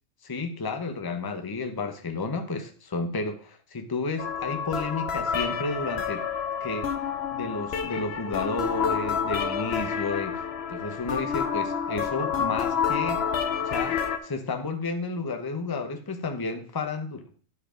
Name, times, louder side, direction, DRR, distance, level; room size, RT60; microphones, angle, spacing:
voice 1, 0.2-6.3 6.6-6.9 7.3-13.2 13.6-17.3, left 3 dB, 20° left, 0.8 m, -32 dB
sound 1, 4.2-14.2, left 7 dB, 55° left, 1.0 m, -29 dB
10.5 x 4.8 x 5.0 m
omnidirectional pair, 1.4 m